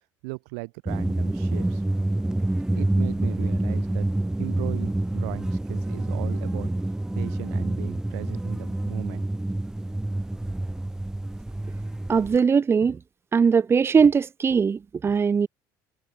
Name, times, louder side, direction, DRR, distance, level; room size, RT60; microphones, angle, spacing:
voice 1, 0.2-1.8 2.7-4.1 4.4-6.7 7.1-9.2, right 33 dB, 90° right, 5.5 m, -38 dB
sound 1, 0.9-12.4, right 1 dB, 5° right, 0.9 m, -27 dB
voice 2, 12.1-13.0 13.3-15.5, right 6 dB, 30° right, 1.4 m, -20 dB
supercardioid pair, 105°, 9 cm